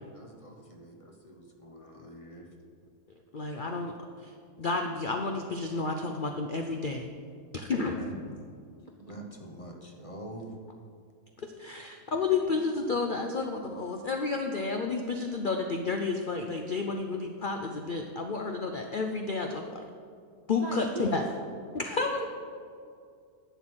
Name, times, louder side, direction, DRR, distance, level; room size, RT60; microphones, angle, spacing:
voice 1, 0.0-2.5 7.8-8.5 9.1-10.5, right 1 dB, 25° left, 2 dB, 0.8 m, -45 dB
voice 2, 3.3-3.9 4.2-7.0 7.5-8.0 11.4-19.8 20.5-21.2 21.7-22.2, left 4 dB, 55° left, 3 dB, 0.6 m, -31 dB
voice 3, 20.6-21.1 22.0-22.3, right 3 dB, 45° right, 2 dB, 0.5 m, -38 dB
11.0 x 7.1 x 6.1 m, 2.3 s
omnidirectional pair, 1.7 m